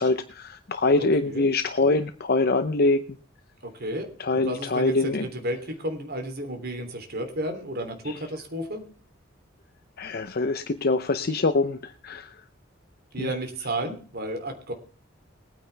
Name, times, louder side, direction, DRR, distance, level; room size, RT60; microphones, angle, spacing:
voice 1, 0.0-3.2 4.2-5.3 8.1-8.2 10.0-12.4 13.2-13.3, left 3 dB, 50° left, 9 dB, 0.7 m, -24 dB
voice 2, 3.7-4.1 4.3-8.8 13.1-14.7, right 1 dB, 55° right, 5 dB, 3.1 m, -32 dB
21.0 x 9.6 x 3.4 m, 0.41 s
head